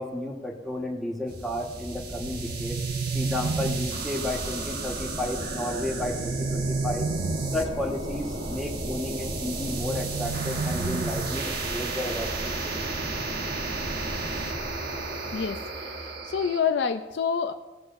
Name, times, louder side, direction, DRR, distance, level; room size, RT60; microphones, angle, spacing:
voice 1, 0.0-2.8 3.1-7.1 7.5-12.9, left 1 dB, ahead, -2 dB, 1.3 m, -32 dB
sound 1, 1.3-16.6, right 2 dB, 60° right, 1.3 m, -33 dB
sound 2, 2.2-4.2 5.9-7.8 9.6-11.6, right 4 dB, 85° right, 0.4 m, -31 dB
voice 2, 15.3-17.5, left 6 dB, 70° left, 7 dB, 0.4 m, -28 dB
18.0 x 7.8 x 2.5 m, 1.1 s
head